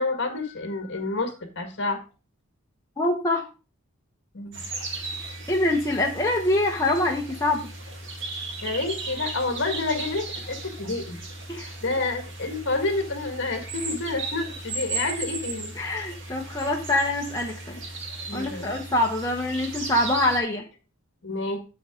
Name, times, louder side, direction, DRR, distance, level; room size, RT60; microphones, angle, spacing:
voice 1, 0.0-2.0 4.3-4.6 8.6-11.2 11.6-15.7 18.3-18.7 21.2-21.6, left 3 dB, 55° left, 5 dB, 1.8 m, -29 dB
voice 2, 3.0-3.5 5.5-7.7 11.5-11.7 15.8-17.8 18.3-20.6, left 1 dB, 15° left, 0 dB, 0.8 m, -25 dB
sound 1, 4.5-20.4, right 3 dB, 55° right, 1.9 m, -36 dB
7.9 x 7.6 x 3.7 m, 0.31 s
head